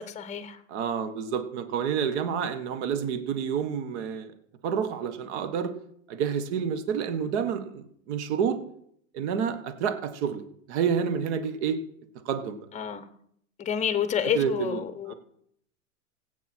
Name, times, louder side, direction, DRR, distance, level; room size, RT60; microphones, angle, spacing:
voice 1, 0.0-0.6 12.7-13.1 13.6-15.1, left 8 dB, 20° left, 1.0 m, -29 dB
voice 2, 0.7-4.3 4.6-5.7 6.1-8.6 9.1-11.8 12.2-12.6 14.3-14.8 15.1-15.2, right 7 dB, 60° right, 1.5 m, -29 dB
16.5 x 8.3 x 4.5 m
supercardioid pair, 130°, 39 cm